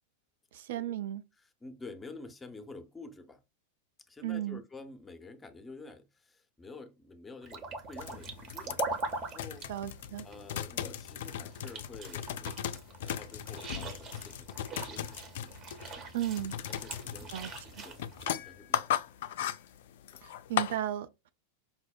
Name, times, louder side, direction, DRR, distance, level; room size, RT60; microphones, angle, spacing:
voice 1, 0.5-1.2 4.2-4.6 9.7-10.3 16.1-16.6 17.3-17.5 17.8-17.9 20.2-21.3, right 12 dB, 55° right, 0.3 m, -35 dB
voice 2, 1.3-3.4 4.0-8.8 9.1-9.7 10.2-15.1 16.6-19.0 20.1-20.3, left 3 dB, 10° left, 0.6 m, -49 dB
sound 1, 7.4-18.3, right 3 dB, 30° right, 0.8 m, -42 dB
sound 2, 8.0-20.8, left 10 dB, 55° left, 0.3 m, -37 dB
5.3 x 2.0 x 2.3 m
figure-of-eight pair, 90°, 0 cm